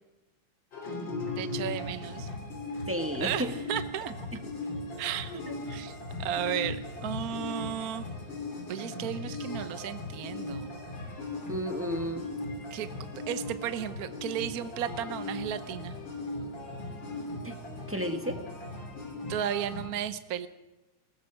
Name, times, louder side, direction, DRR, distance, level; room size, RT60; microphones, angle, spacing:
sound 1, 0.7-19.9, left 2 dB, 55° left, 4.0 m, -38 dB
voice 1, 1.4-2.3 3.2-4.1 5.0-5.4 5.7-8.1 8.7-10.7 12.7-12.9 13.3-16.0 19.3-20.5, right 10 dB, 55° right, 11 dB, 1.1 m, -34 dB
voice 2, 2.9-3.5 5.1-5.5 11.5-12.3 17.4-17.6 17.9-18.4, equal, 5° right, 5 dB, 1.6 m, -33 dB
21.0 x 20.0 x 6.4 m, 1.0 s
omnidirectional pair, 2.4 m